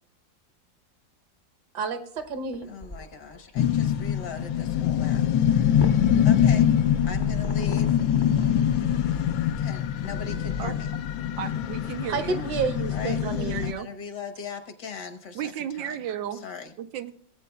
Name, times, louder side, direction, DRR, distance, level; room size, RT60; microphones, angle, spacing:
voice 1, 1.7-2.7 12.1-13.6, right 4 dB, 65° right, 8 dB, 1.5 m, -30 dB
sound 1, 2.2-9.5, left 1 dB, 30° left, 0.5 m, -41 dB
voice 2, 2.7-5.2 5.8-6.7 7.1-8.0 9.6-10.9 12.9-13.2 13.6-16.0 16.3-16.7, left 6 dB, 65° left, 9 dB, 1.6 m, -39 dB
sound 2, 3.6-13.7, left 9 dB, 85° left, 1.4 m, -24 dB
voice 3, 11.4-12.4 13.2-13.9 15.3-16.4 16.8-17.1, right 10 dB, 85° right, 9 dB, 1.4 m, -34 dB
18.0 x 8.3 x 2.3 m, 0.64 s
omnidirectional pair, 2.0 m